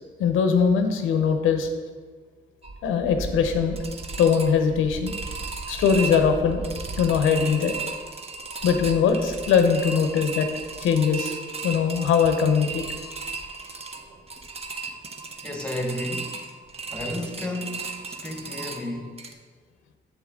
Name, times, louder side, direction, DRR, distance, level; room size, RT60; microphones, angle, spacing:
voice 1, 0.2-1.7 2.8-3.8 4.2-5.1 5.7-6.6 7.0-7.7 8.6-10.5 10.8-11.3 11.6-12.8, left 6 dB, 90° left, 7 dB, 0.8 m, -21 dB
sound 1, 2.6-19.3, right 4 dB, 30° right, 0.8 m, -35 dB
voice 2, 15.4-16.4 16.9-19.2, left 1 dB, 5° left, 3 dB, 1.3 m, -32 dB
7.3 x 7.2 x 3.6 m, 1.5 s
cardioid pair, 90°, 20 cm